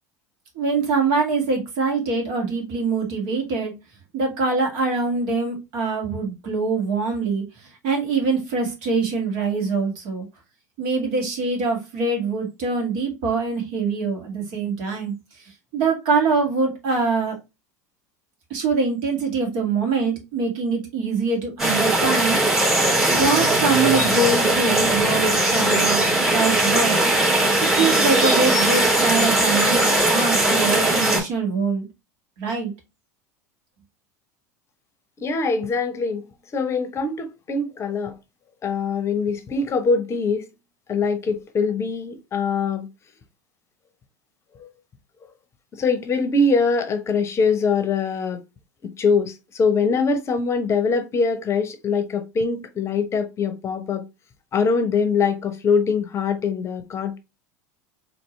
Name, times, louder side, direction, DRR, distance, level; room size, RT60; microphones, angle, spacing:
voice 1, 0.6-3.7 4.1-7.4 7.8-10.3 10.8-15.1 15.7-17.4 18.5-22.4 23.1-27.0 27.6-31.9 32.4-32.7, right 4 dB, 60° right, 2.0 m, -24 dB
sound 1, 21.6-31.2, right 1 dB, 5° right, 2.7 m, -19 dB
voice 2, 35.2-36.2 36.5-38.1 38.6-40.5 40.9-42.9 45.7-48.4 49.0-54.0 54.5-57.2, left 4 dB, 30° left, 0.8 m, -23 dB
4.4 x 3.0 x 3.1 m
hypercardioid pair, 80°, 9 cm